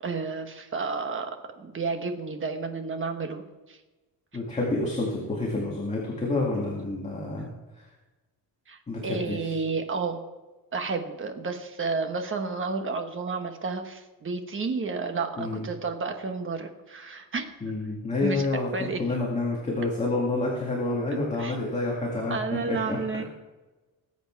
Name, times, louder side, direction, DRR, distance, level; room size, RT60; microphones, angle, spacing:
voice 1, 0.0-3.8 8.7-10.2 10.7-17.5 18.2-18.5 18.7-19.0 21.4-21.6 22.3-23.2, right 4 dB, 30° right, 6 dB, 1.3 m, -31 dB
voice 2, 4.3-7.5 7.8-7.9 8.9-9.5 15.4-15.7 17.6-22.4 22.7-23.0, left 2 dB, 20° left, -3 dB, 2.2 m, -28 dB
20.0 x 8.1 x 4.6 m, 1.2 s
cardioid pair, 165°, 38 cm